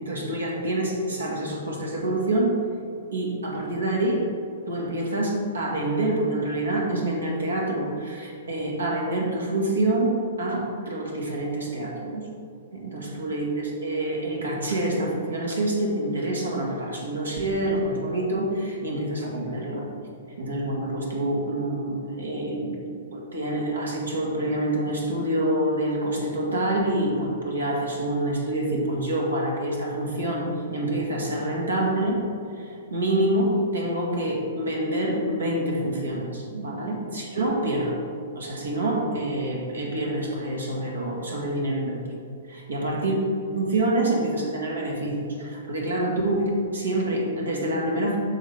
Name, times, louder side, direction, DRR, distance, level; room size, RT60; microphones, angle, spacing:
voice 1, 0.0-2.6 3.1-4.3 4.7-12.3 12.7-19.9 20.4-22.7 23.1-32.2 32.5-38.0 38.4-42.2 42.5-43.2 43.5-48.2, right 1 dB, 80° right, -1 dB, 1.8 m, -26 dB
13.0 x 4.5 x 3.5 m, 2.5 s
figure-of-eight pair, 110°, 0 cm